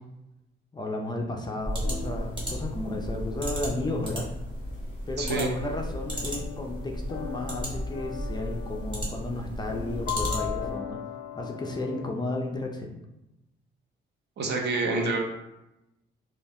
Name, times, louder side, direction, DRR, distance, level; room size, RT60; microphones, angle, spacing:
voice 1, 0.7-4.3 5.1-11.0 11.4-13.0, left 2 dB, 20° left, 1 dB, 0.4 m, -33 dB
sound 1, 1.6-10.7, equal, 25° right, 1.0 m, -34 dB
sound 2, 1.7-12.1, left 9 dB, 85° left, 0.4 m, -40 dB
voice 2, 5.2-5.5 14.4-15.2, right 3 dB, 60° right, 0 dB, 0.7 m, -27 dB
2.4 x 2.0 x 3.4 m, 0.93 s
cardioid pair, 90°, 20 cm